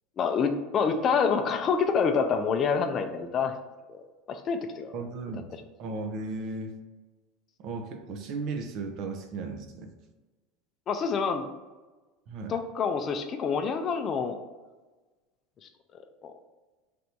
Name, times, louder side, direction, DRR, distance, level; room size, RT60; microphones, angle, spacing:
voice 1, 0.2-3.5 3.9-5.0 10.9-11.5 12.5-14.4 16.2-16.3, left 5 dB, 35° left, 6 dB, 0.4 m, -27 dB
voice 2, 4.9-5.5 5.8-6.7 7.6-9.9 12.3-12.6, right 3 dB, 50° right, 5 dB, 0.6 m, -35 dB
3.4 x 2.6 x 4.4 m, 1.2 s
supercardioid pair, 130°, 0 cm